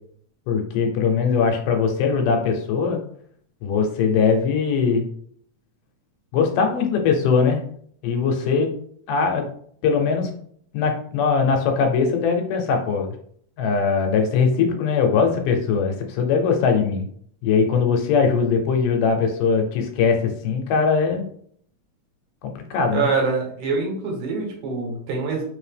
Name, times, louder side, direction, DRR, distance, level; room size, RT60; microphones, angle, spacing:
voice 1, 0.5-3.0 3.6-5.1 6.3-7.6 8.0-8.7 9.1-9.5 9.8-10.3 10.7-13.1 13.6-17.1 17.4-21.2 22.4-23.1, left 5 dB, 85° left, 4 dB, 2.4 m, -21 dB
voice 2, 22.9-25.4, right 4 dB, 70° right, 0 dB, 2.4 m, -25 dB
5.3 x 2.8 x 3.4 m, 0.62 s
omnidirectional pair, 3.7 m